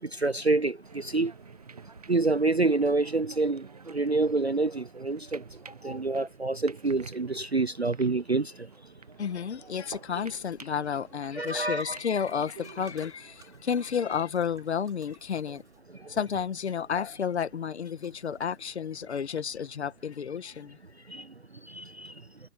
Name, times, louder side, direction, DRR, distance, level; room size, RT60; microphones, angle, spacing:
voice 1, 0.1-1.3 2.1-5.4 5.8-8.5 11.3-12.0 21.1-21.3 21.7-22.1, right 3 dB, 40° right, 0.5 m, -27 dB
sound 1, 0.8-14.1, right 5 dB, 25° right, 0.9 m, -50 dB
voice 2, 9.2-15.6 16.1-20.8, left 7 dB, 40° left, 1.6 m, -31 dB
sound 2, 11.4-19.2, right 8 dB, 5° right, 5.7 m, -62 dB
hypercardioid pair, 165°, 50 cm